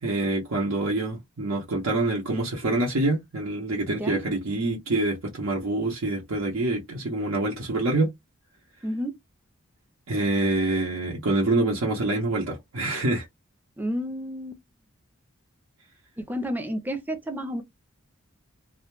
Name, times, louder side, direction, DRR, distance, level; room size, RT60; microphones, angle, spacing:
voice 1, 0.0-8.1 10.1-13.3, right 2 dB, 85° right, 0.7 m, -26 dB
voice 2, 3.9-4.2 8.8-9.2 13.8-14.6 16.2-17.6, equal, 10° right, 0.4 m, -31 dB
2.1 x 2.0 x 3.0 m
head